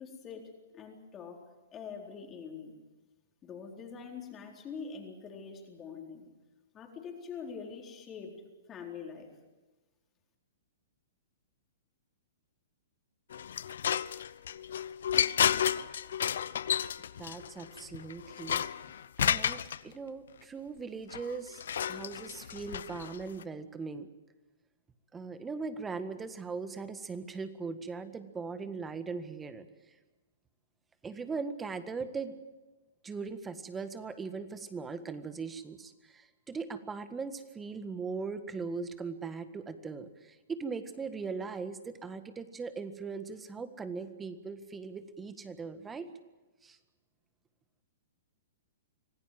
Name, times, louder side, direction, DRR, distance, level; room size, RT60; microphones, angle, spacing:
voice 1, 0.0-2.7 3.4-6.3 6.7-9.4, left 6 dB, 25° left, 1 dB, 4.2 m, -44 dB
sound 1, 13.3-19.8 21.1-23.4, left 9 dB, 70° left, 0.8 m, -32 dB
voice 2, 17.2-18.6 19.2-24.1 25.1-29.7 31.0-32.4 33.0-46.1 46.6-46.8, right 4 dB, 15° right, 11 dB, 1.6 m, -39 dB
25.5 x 17.0 x 7.7 m, 1.2 s
hypercardioid pair, 125°, 0 cm